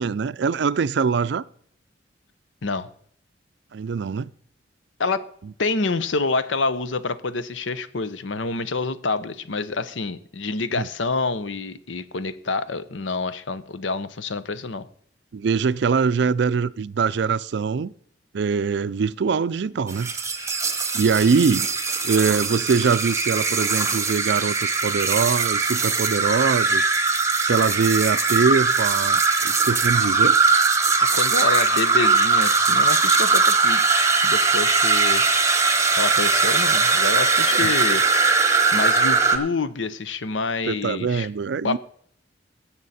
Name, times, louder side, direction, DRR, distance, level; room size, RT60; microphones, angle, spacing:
voice 1, 0.0-1.4 3.7-4.3 10.7-10.9 15.3-17.9 18.3-20.1 20.9-21.7 22.0-26.9 27.4-30.4 37.5-37.7 40.7-41.8, right 5 dB, 65° right, 0.4 m, -23 dB
voice 2, 5.6-14.8 31.1-34.0 34.2-35.2 36.0-38.0 38.7-41.3 41.6-41.8, left 3 dB, 80° left, 0.8 m, -27 dB
sound 1, 19.9-39.4, right 4 dB, 15° right, 1.1 m, -20 dB
17.5 x 7.3 x 4.2 m
head